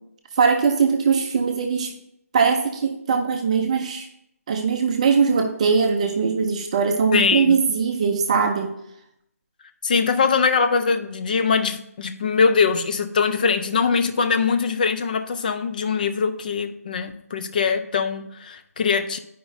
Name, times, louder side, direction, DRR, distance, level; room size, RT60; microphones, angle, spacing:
voice 1, 0.4-1.9 2.3-4.1 4.5-8.7, right 5 dB, 25° right, 3 dB, 0.6 m, -21 dB
voice 2, 7.1-7.6 9.8-19.2, left 5 dB, 30° left, 8 dB, 0.5 m, -22 dB
10.5 x 5.0 x 2.6 m, 0.77 s
figure-of-eight pair, 155°, 8 cm